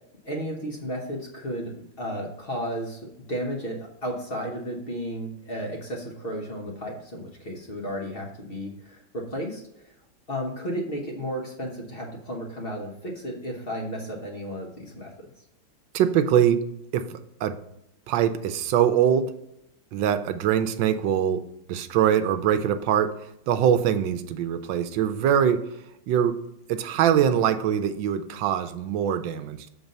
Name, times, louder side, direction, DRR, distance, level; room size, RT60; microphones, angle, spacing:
voice 1, 0.2-3.0 3.3-9.9 10.3-15.3, equal, 35° left, -1 dB, 1.0 m, -33 dB
voice 2, 15.9-16.6 16.9-17.6 18.1-19.3 19.9-23.2 23.5-25.6 26.1-26.4 26.7-29.6, right 9 dB, 85° right, 9 dB, 1.3 m, -23 dB
7.1 x 3.9 x 5.2 m, 0.80 s
omnidirectional pair, 2.0 m